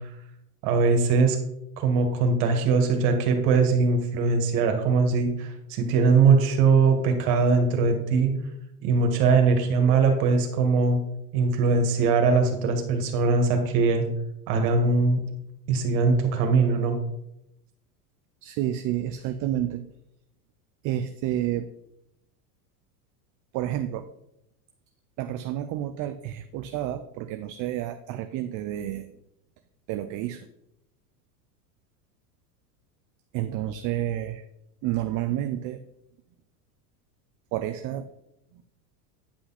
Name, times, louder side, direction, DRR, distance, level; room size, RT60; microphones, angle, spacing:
voice 1, 0.6-1.4 1.8-8.4 8.8-11.0 11.3-14.0 14.5-15.2 15.7-17.0, right 4 dB, 60° right, 5 dB, 2.0 m, -21 dB
voice 2, 18.4-19.9 20.8-21.7 23.5-24.1 25.2-29.1 29.9-30.5 33.3-34.4 34.8-35.8 37.5-38.1 38.5-38.6, right 12 dB, 40° right, 9 dB, 0.5 m, -30 dB
9.8 x 5.6 x 4.2 m, 0.83 s
hypercardioid pair, 105°, 49 cm